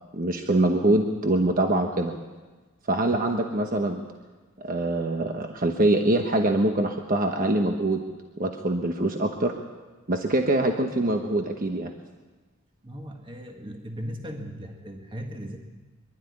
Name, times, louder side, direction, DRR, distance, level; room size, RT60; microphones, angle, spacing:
voice 1, 0.1-2.1 2.9-4.0 4.6-8.0 8.4-9.5 10.1-11.9, right 1 dB, 40° right, 4 dB, 1.1 m, -24 dB
voice 2, 12.8-15.6, equal, 20° right, 3 dB, 1.7 m, -37 dB
24.0 x 12.0 x 9.8 m, 1.3 s
head